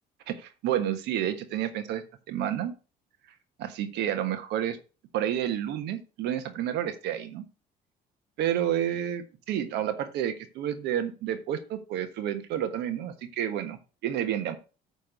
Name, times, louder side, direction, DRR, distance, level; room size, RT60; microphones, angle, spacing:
voice 1, 0.3-2.7 3.6-4.8 5.1-7.4 8.4-14.6, right 10 dB, 80° right, 9 dB, 1.4 m, -30 dB
9.3 x 3.6 x 6.6 m, 0.33 s
cardioid pair, 110°, 17 cm